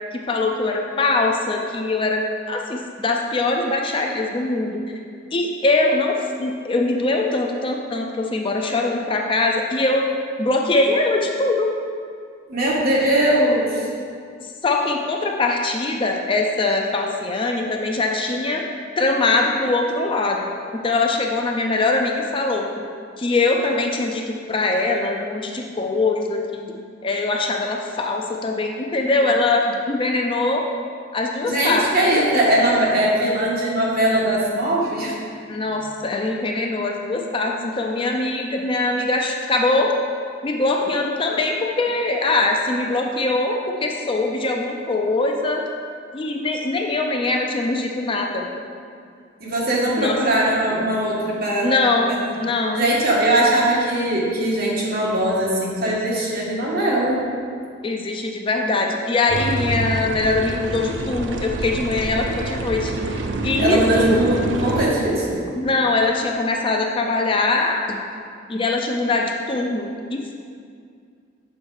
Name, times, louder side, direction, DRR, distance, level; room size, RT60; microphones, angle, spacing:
voice 1, 0.1-4.8 5.3-10.1 10.4-11.7 14.4-18.6 19.0-20.5 20.8-22.7 23.2-30.7 31.1-31.9 35.5-39.9 40.4-45.6 46.1-48.5 49.9-50.2 51.6-52.9 57.8-62.9 63.4-64.3 65.6-68.0 68.5-70.3, left 2 dB, 25° left, 1 dB, 0.4 m, -22 dB
voice 2, 12.5-13.9 31.4-35.1 49.4-51.7 52.1-52.2 52.7-57.2 63.6-65.4, right 1 dB, 50° right, -5 dB, 1.3 m, -20 dB
sound 1, 59.3-64.9, right 2 dB, 70° right, 0.5 m, -26 dB
6.3 x 4.3 x 4.8 m, 2.3 s
head